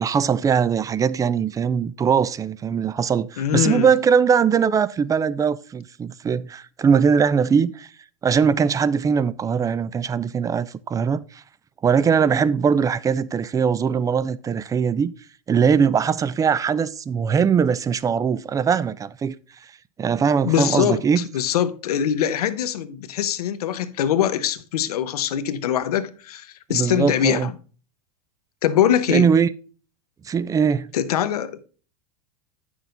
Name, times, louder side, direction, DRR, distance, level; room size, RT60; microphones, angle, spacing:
voice 1, 0.0-7.9 8.2-11.4 11.8-15.1 15.5-19.3 20.0-21.3 26.7-27.5 29.1-29.5 30.3-30.9, right 6 dB, 20° right, 0.4 m, -21 dB
voice 2, 3.4-3.9 20.4-27.5 28.6-29.3 30.9-31.6, left 10 dB, 85° left, 0.9 m, -23 dB
9.0 x 6.2 x 3.9 m
supercardioid pair, 115°, 19 cm